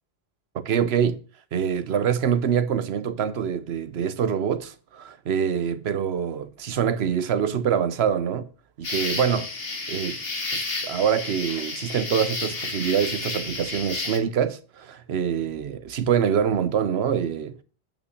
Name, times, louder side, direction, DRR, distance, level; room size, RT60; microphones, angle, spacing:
voice 1, 0.6-1.2 1.5-8.5 8.8-9.5 9.9-10.2 10.5-17.6, right 8 dB, 85° right, 1.1 m, -25 dB
sound 1, 8.8-14.2, left 3 dB, 70° left, 1.9 m, -31 dB
9.0 x 5.8 x 6.4 m
omnidirectional pair, 1.0 m